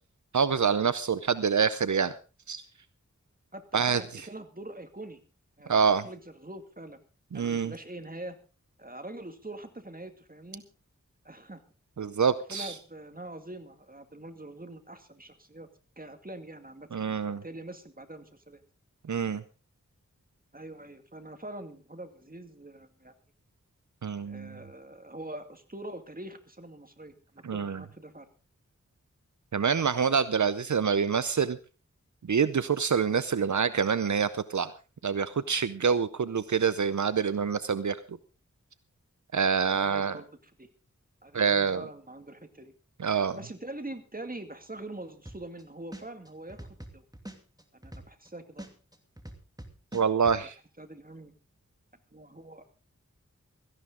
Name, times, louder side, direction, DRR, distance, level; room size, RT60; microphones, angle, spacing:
voice 1, 0.3-2.2 2.5-2.6 3.7-4.0 5.7-6.0 7.3-7.7 12.0-12.7 16.9-17.4 19.1-19.4 24.0-24.5 27.4-27.8 29.5-31.6 32.3-34.7 35.0-38.0 39.3-40.2 41.3-41.8 43.0-43.4 49.9-50.5, right 6 dB, 75° right, 14 dB, 0.6 m, -26 dB
voice 2, 3.5-5.2 5.6-7.0 7.3-8.4 8.8-10.6 11.2-11.6 12.5-15.7 16.0-16.9 17.3-18.6 20.5-23.1 24.3-28.3 39.7-40.7 41.2-42.7 43.4-46.6 46.9-47.0 47.7-48.7 50.8-51.3 52.1-52.6, right 1 dB, 30° right, 7 dB, 2.2 m, -44 dB
sound 1, 45.3-45.6 45.9-48.3 48.6-50.4, right 1 dB, 15° right, 2.5 m, -43 dB
17.0 x 14.5 x 3.8 m, 0.33 s
wide cardioid pair, 50°, 30 cm